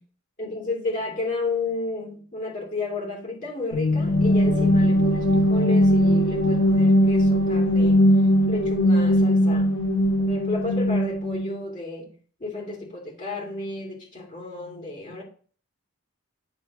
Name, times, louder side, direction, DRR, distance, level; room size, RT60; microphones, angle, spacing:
voice 1, 0.4-9.7 10.2-12.1 12.4-15.2, left 3 dB, 35° left, 2.4 m, -32 dB
sound 1, 3.7-11.5, equal, 75° left, 3.7 m, -20 dB
9.8 x 3.4 x 4.8 m
head